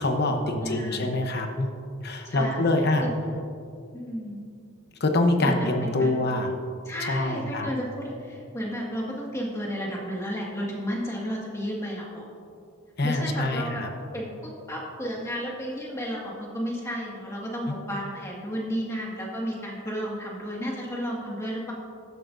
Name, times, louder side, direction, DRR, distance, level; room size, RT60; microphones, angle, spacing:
voice 1, 0.0-1.7 2.0-3.1 5.0-6.5 7.0-7.7 13.0-13.9 17.7-17.8, left 2 dB, 50° left, 4 dB, 0.9 m, -25 dB
voice 2, 0.6-1.1 2.2-2.6 3.0-3.1 3.9-4.4 5.4-6.2 6.9-12.3 13.0-13.8 14.1-21.7, equal, 15° left, -3 dB, 1.8 m, -33 dB
15.0 x 11.5 x 2.6 m, 2.5 s
head